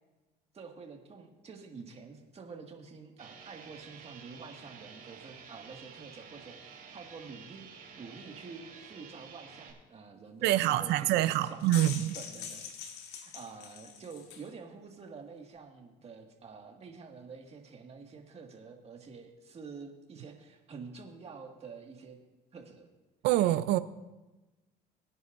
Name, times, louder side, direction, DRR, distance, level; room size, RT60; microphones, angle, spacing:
voice 1, 0.5-12.7 13.3-22.2 22.5-22.9, right 5 dB, 40° right, 2 dB, 2.0 m, -48 dB
sound 1, 3.2-9.7, right 6 dB, 60° right, 2.6 m, -51 dB
voice 2, 10.4-12.2 23.2-23.8, right 14 dB, 90° right, 13 dB, 0.6 m, -26 dB
sound 2, 11.4-14.5, left 7 dB, 90° left, 1.6 m, -43 dB
23.0 x 9.8 x 2.6 m, 1.1 s
cardioid pair, 110°, 17 cm